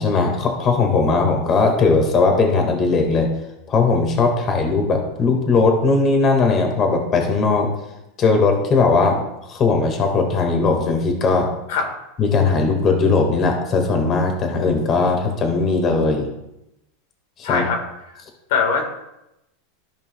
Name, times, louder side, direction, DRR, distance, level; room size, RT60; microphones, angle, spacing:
voice 1, 0.0-3.3 3.7-7.7 8.2-9.2 9.5-11.5 12.2-16.3 17.5-17.7, left 4 dB, 35° left, 3 dB, 1.6 m, -18 dB
voice 2, 17.4-17.8 18.1-18.2 18.5-18.9, left 5 dB, 70° left, 3 dB, 1.4 m, -21 dB
14.0 x 5.3 x 2.2 m, 0.89 s
supercardioid pair, 130°, 0 cm